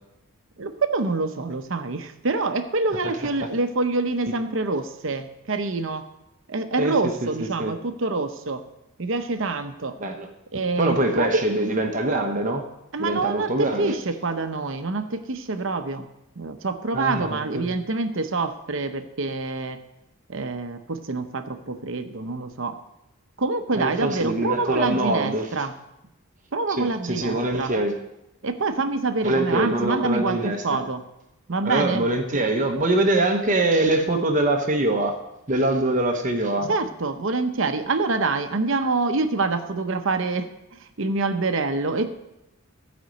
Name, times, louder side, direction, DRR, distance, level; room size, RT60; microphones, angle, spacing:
voice 1, 0.6-6.1 6.5-8.6 9.0-10.0 10.5-11.5 12.9-16.1 16.4-19.8 20.3-22.8 23.4-25.7 26.5-27.7 28.4-31.0 31.5-32.1 36.7-42.2, right 3 dB, 60° right, 8 dB, 0.7 m, -26 dB
voice 2, 10.8-12.6 13.0-13.9 16.9-17.7 23.7-25.5 26.8-27.9 29.2-30.6 31.6-35.2 35.5-36.7, right 1 dB, 35° right, 4 dB, 0.9 m, -23 dB
14.5 x 5.2 x 7.7 m, 0.90 s
head